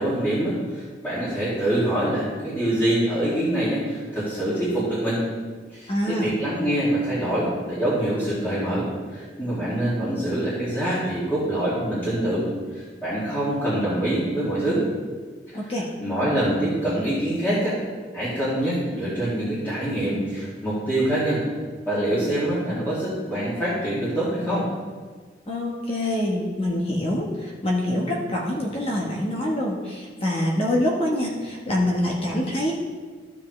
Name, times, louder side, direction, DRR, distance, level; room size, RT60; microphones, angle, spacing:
voice 1, 0.0-5.2 5.7-12.5 12.7-14.8 15.5-15.7 16.0-17.8 18.1-21.4 21.9-24.7, right 1 dB, 10° left, -11 dB, 2.2 m, -25 dB
voice 2, 5.9-6.4 15.5-15.9 25.5-32.7, left 1 dB, 30° left, -2 dB, 1.1 m, -25 dB
13.0 x 7.2 x 3.2 m, 1.5 s
head